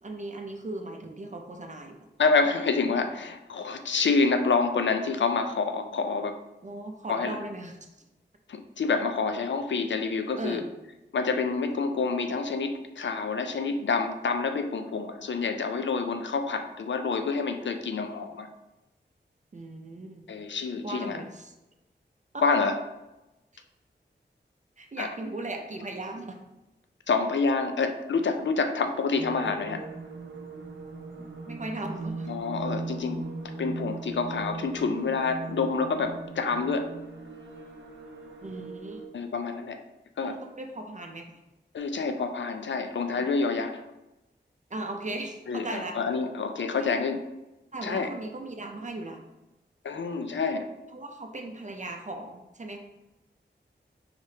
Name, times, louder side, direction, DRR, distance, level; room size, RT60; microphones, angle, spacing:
voice 1, 0.0-2.1 6.6-8.0 10.4-10.7 19.5-20.3 20.8-21.5 22.3-22.4 23.5-23.6 24.8-26.4 31.2-32.3 38.4-39.0 40.2-41.4 44.7-46.0 46.7-47.0 47.7-49.2 50.9-52.8, right 2 dB, 40° right, 3 dB, 0.5 m, -38 dB
voice 2, 2.2-6.4 7.1-7.3 8.5-10.6 11.1-18.5 20.3-21.2 22.4-22.7 25.0-25.1 27.1-29.9 32.3-33.2 33.6-36.9 39.1-39.8 40.2-40.3 41.7-43.7 45.5-47.2 47.8-48.1 49.8-50.7, left 4 dB, 75° left, 7 dB, 0.5 m, -27 dB
sound 1, 29.1-39.1, right 3 dB, 80° right, 0.7 m, -39 dB
4.8 x 3.4 x 2.7 m, 0.98 s
wide cardioid pair, 85°, 19 cm